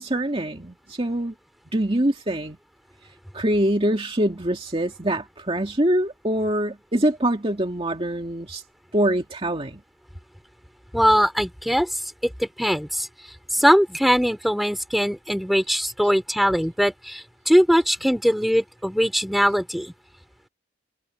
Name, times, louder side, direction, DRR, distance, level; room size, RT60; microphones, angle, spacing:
voice 1, 0.0-1.3 1.7-2.6 3.3-8.6 8.9-9.8, right 1 dB, 30° right, 2.3 m, -24 dB
voice 2, 10.9-11.9 12.4-13.1 13.5-19.9, equal, ahead, 4.1 m, -21 dB
head